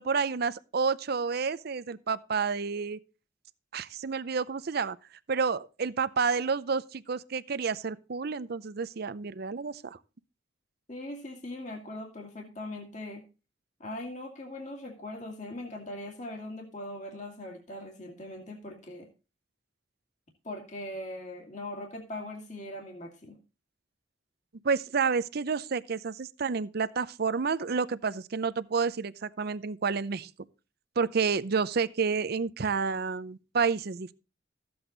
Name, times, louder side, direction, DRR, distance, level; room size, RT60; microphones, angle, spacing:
voice 1, 0.0-3.0 3.7-5.0 5.3-10.0 24.6-30.3 31.0-34.1, right 5 dB, 60° right, 0.6 m, -30 dB
voice 2, 10.9-13.2 13.8-19.1 20.4-23.4, left 1 dB, 40° left, 2.0 m, -40 dB
14.0 x 7.9 x 3.9 m
head